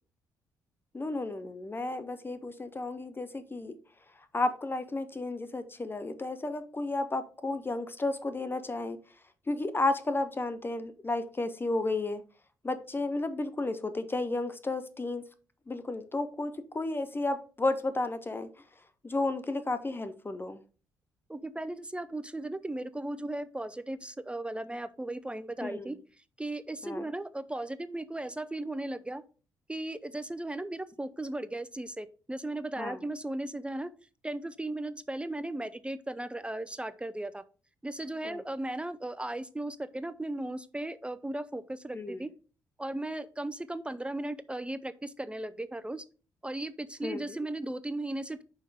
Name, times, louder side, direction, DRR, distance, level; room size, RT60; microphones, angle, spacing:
voice 1, 0.9-3.7 4.1-9.0 9.5-12.2 12.6-15.2 15.7-18.5 19.0-20.6 25.6-25.9 26.8-27.1 32.8-33.0 38.2-38.4 41.9-42.3 47.0-47.4, left 2 dB, 25° left, 11 dB, 0.8 m, -32 dB
voice 2, 21.3-26.0 26.4-29.2 29.7-33.9 34.2-37.4 37.8-42.3 42.8-46.0 46.4-48.4, right 1 dB, 10° right, 14 dB, 0.5 m, -36 dB
5.6 x 5.4 x 4.9 m, 0.37 s
figure-of-eight pair, 40°, 9 cm